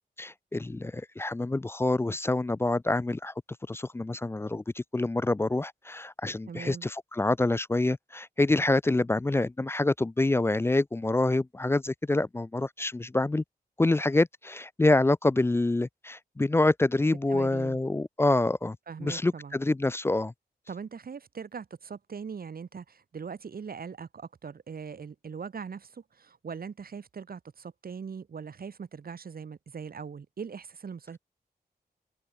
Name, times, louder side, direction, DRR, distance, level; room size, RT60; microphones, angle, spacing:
voice 1, 0.2-3.3 3.7-13.4 13.8-20.3, left 2 dB, 15° left, 0.3 m, -26 dB
voice 2, 6.5-6.9 17.3-17.8 18.9-19.6 20.7-31.2, right 6 dB, 65° right, 3.4 m, -41 dB
open air
wide cardioid pair, 175°, 17 cm